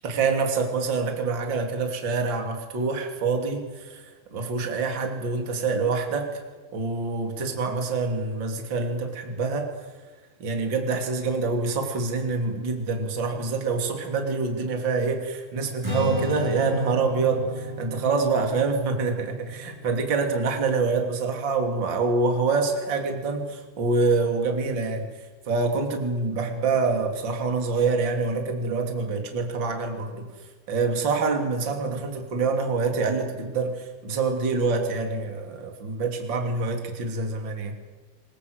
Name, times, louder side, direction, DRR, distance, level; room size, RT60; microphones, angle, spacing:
voice 1, 0.0-6.4 6.7-9.7 10.4-25.1 25.5-30.3 30.7-37.7, right 4 dB, 30° right, 4 dB, 3.2 m, -26 dB
Strum, 15.8-22.1, equal, 5° right, 4.0 m, -34 dB
26.5 x 21.5 x 8.3 m, 1.3 s
omnidirectional pair, 5.4 m